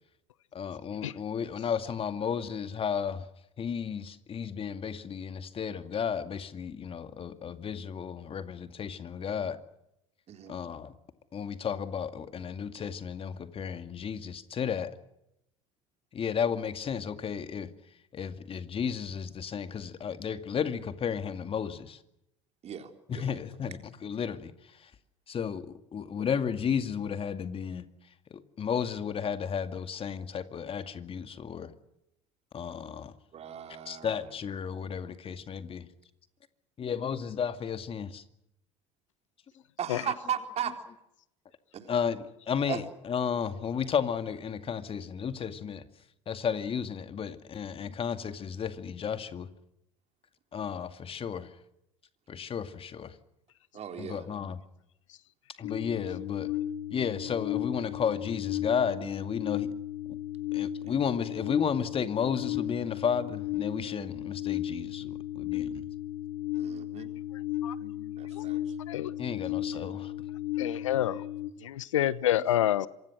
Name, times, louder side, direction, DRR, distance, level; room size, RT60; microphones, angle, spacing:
voice 1, 0.5-3.3 3.6-9.6 10.5-10.9 11.3-14.9 16.1-17.7 18.1-22.0 23.1-24.5 24.8-24.9 25.3-27.9 28.3-31.7 32.5-33.1 33.9-35.9 36.8-38.2 41.9-45.8 46.3-49.5 50.5-51.5 52.3-53.1 54.0-54.6 55.6-56.5 56.9-59.7 60.1-60.2 60.5-65.9 67.8-68.1 69.2-70.1, left 7 dB, 35° left, 10 dB, 2.3 m, -33 dB
voice 2, 22.6-23.4 33.3-34.3 39.8-40.8 41.7-41.9 42.6-42.8 53.7-54.3 66.5-67.1 68.2-68.8, right 9 dB, 40° right, 6 dB, 3.9 m, -37 dB
sound 1, 55.6-71.5, left 12 dB, 60° left, 2.4 m, -35 dB
voice 3, 70.6-71.2 71.6-72.9, left 12 dB, 80° left, 19 dB, 1.0 m, -27 dB
27.0 x 25.0 x 6.3 m, 0.83 s
hypercardioid pair, 70°, 16 cm